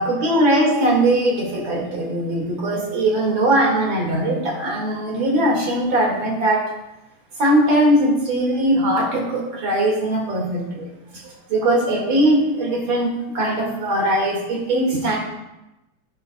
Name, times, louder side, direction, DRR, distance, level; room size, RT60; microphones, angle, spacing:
voice 1, 0.0-6.6 7.4-10.9 11.2-15.2, right 1 dB, 45° right, -1 dB, 2.5 m, -20 dB
11.0 x 10.0 x 2.3 m, 0.95 s
omnidirectional pair, 3.3 m